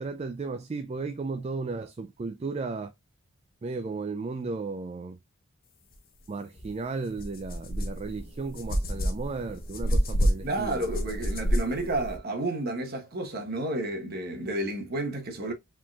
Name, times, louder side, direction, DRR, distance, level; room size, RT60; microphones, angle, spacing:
voice 1, 0.0-2.9 3.6-5.2 6.3-10.8, right 4 dB, 30° right, 0.3 m, -34 dB
sound 1, 6.6-6.7 7.1-12.2, equal, 40° left, 1.0 m, -29 dB
voice 2, 10.4-15.5, right 2 dB, 45° right, 1.1 m, -31 dB
5.0 x 3.7 x 2.3 m
head